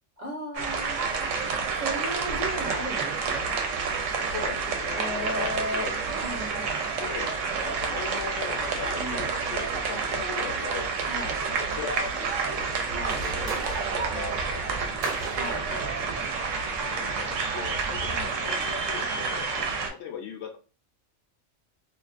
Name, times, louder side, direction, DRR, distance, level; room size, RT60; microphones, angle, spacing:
voice 1, 0.2-1.0 1.3-1.4 1.8-3.5 4.9-5.9 6.2-6.8 8.9-9.3 11.0-11.4 12.9-13.2 15.3-16.3 18.0-18.4, equal, 40° right, -2 dB, 0.9 m, -36 dB
sound 1, 0.6-19.9, right 5 dB, 75° right, 0.9 m, -29 dB
voice 2, 4.2-6.0 7.0-7.3 7.6-10.9 11.5-12.7 13.1-15.3 16.8-20.6, left 7 dB, 70° left, 3 dB, 0.8 m, -39 dB
sound 2, 12.9-18.3, right 3 dB, 55° right, 0.6 m, -39 dB
2.4 x 2.2 x 2.4 m, 0.35 s
omnidirectional pair, 1.3 m